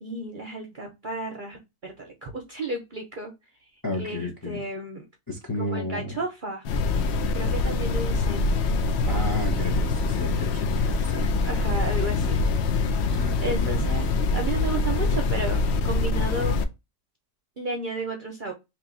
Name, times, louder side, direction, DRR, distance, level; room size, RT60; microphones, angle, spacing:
voice 1, 0.0-3.3 4.0-5.0 5.7-6.6 7.3-8.5 10.8-12.4 13.4-16.6 17.6-18.5, right 2 dB, 45° right, 0.7 m, -33 dB
voice 2, 3.8-4.6 5.3-6.2 9.1-11.5 12.1-12.7 13.1-13.9, left 1 dB, 20° left, 0.6 m, -33 dB
sound 1, 6.6-16.6, left 3 dB, 70° left, 0.6 m, -24 dB
3.1 x 2.8 x 3.8 m
omnidirectional pair, 1.6 m